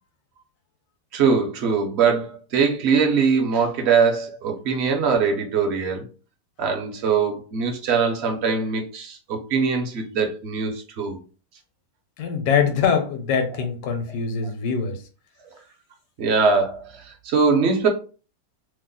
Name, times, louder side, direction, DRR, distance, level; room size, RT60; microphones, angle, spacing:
voice 1, 1.1-6.0 6.6-11.2 16.2-17.9, right 5 dB, 55° right, 0.7 m, -22 dB
voice 2, 12.2-15.0, left 6 dB, 70° left, 1.2 m, -23 dB
3.0 x 2.0 x 3.7 m
omnidirectional pair, 1.9 m